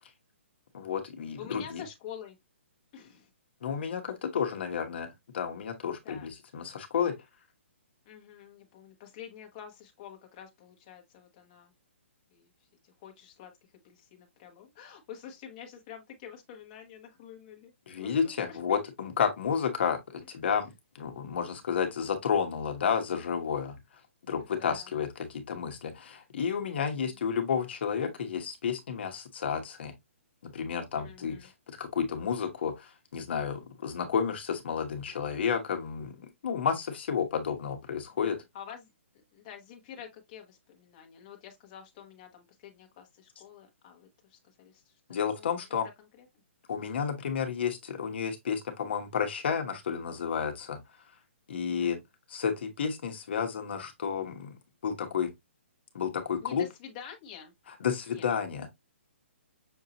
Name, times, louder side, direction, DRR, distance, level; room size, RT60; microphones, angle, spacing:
voice 1, 0.7-1.8 3.6-7.1 17.9-23.8 24.3-29.9 30.4-38.4 45.1-45.9 46.7-50.8 51.5-52.0 52.3-54.5 54.8-55.3 55.9-56.6 57.8-58.7, left 7 dB, 55° left, 1.2 m, -31 dB
voice 2, 1.4-2.4 2.9-3.3 6.0-6.3 8.1-11.7 12.3-12.5 13.0-13.5 13.8-17.7 18.0-18.8 24.4-24.9 26.9-27.2 31.0-31.5 38.2-38.9 39.3-44.8 45.1-46.3 51.7-51.9 56.4-57.5 58.1-58.3, left 8 dB, 30° left, 1.1 m, -48 dB
6.3 x 2.7 x 2.9 m
hypercardioid pair, 165°, 7 cm